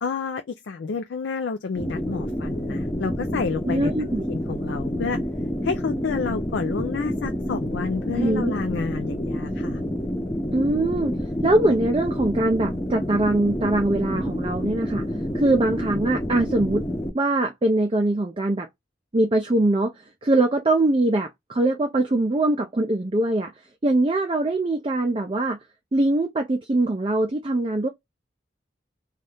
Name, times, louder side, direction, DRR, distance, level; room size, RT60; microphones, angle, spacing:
voice 1, 0.0-3.9 4.3-5.2 5.6-9.8, left 5 dB, 80° left, 0.4 m, -29 dB
sound 1, 1.8-17.1, equal, 15° left, 0.7 m, -28 dB
voice 2, 3.6-4.2 8.2-8.5 10.5-15.1 15.3-16.8 17.1-18.7 19.1-19.9 20.2-23.5 23.8-25.6 25.9-27.9, right 2 dB, 30° right, 0.4 m, -22 dB
2.7 x 2.3 x 3.3 m
head